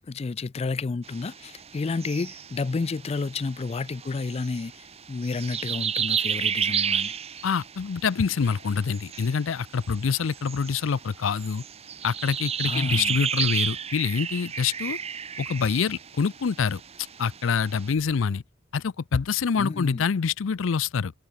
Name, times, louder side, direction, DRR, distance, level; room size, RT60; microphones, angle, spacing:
voice 1, 0.0-7.2 12.6-13.1 19.6-20.0, left 4 dB, 30° left, 0.4 m, -31 dB
sound 1, 1.0-17.9, right 8 dB, 35° right, 0.9 m, -33 dB
voice 2, 7.4-11.6 12.0-15.0 15.4-16.8 17.2-18.4 18.7-21.1, left 6 dB, 85° left, 0.5 m, -26 dB
head